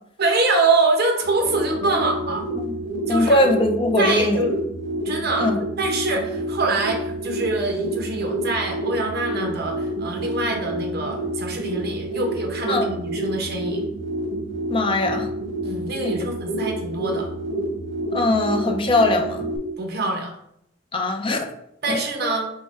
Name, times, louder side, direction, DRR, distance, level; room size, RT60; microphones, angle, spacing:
voice 1, 0.2-2.4 3.1-3.4 4.0-4.5 5.0-13.8 15.6-17.3 19.8-20.3 21.8-22.4, right 3 dB, 55° right, 2 dB, 0.9 m, -24 dB
sound 1, 1.2-19.6, right 1 dB, 90° right, 0.8 m, -28 dB
voice 2, 3.1-4.4 5.4-5.6 12.7-12.9 14.7-15.3 18.1-19.5 20.9-21.5 21.9-22.0, left 2 dB, 25° left, 4 dB, 0.5 m, -21 dB
4.6 x 2.2 x 4.2 m, 0.74 s
head